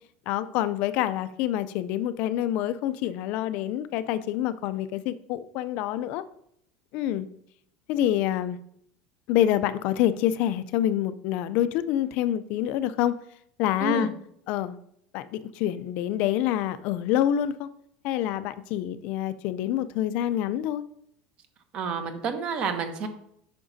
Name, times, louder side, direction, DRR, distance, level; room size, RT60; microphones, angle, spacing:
voice 1, 0.3-6.2 6.9-7.3 7.9-8.6 9.3-13.2 13.6-14.1 14.5-14.8 15.1-17.7 18.0-20.8, left 11 dB, 50° left, 13 dB, 0.4 m, -27 dB
voice 2, 13.8-14.1 21.7-23.1, right 5 dB, 35° right, 8 dB, 0.8 m, -29 dB
8.6 x 5.9 x 2.7 m, 0.72 s
cardioid pair, 165°, 3 cm